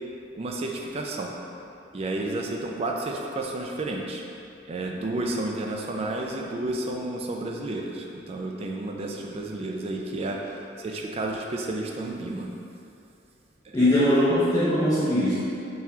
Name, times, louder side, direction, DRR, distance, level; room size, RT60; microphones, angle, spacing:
voice 1, 0.3-1.3 1.9-4.2 4.7-12.5 13.6-13.9, right 2 dB, 35° right, 1 dB, 0.3 m, -31 dB
voice 2, 13.7-15.4, left 1 dB, 20° left, -12 dB, 0.6 m, -21 dB
3.9 x 2.9 x 2.7 m, 2.7 s
head